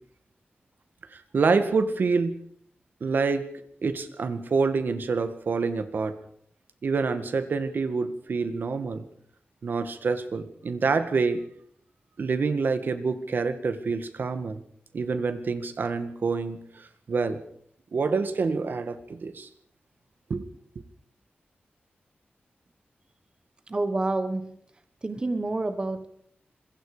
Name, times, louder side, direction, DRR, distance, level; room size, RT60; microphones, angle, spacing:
voice 1, 1.1-2.3 3.0-3.5 3.8-6.1 6.8-9.0 9.6-11.4 12.2-14.6 14.9-17.4 17.9-19.5 20.3-20.5, right 4 dB, 60° right, 10 dB, 2.0 m, -27 dB
voice 2, 23.7-24.6 25.0-26.1, right 2 dB, 25° right, 9 dB, 1.3 m, -28 dB
26.0 x 22.0 x 5.1 m, 0.67 s
wide cardioid pair, 175°, 4 cm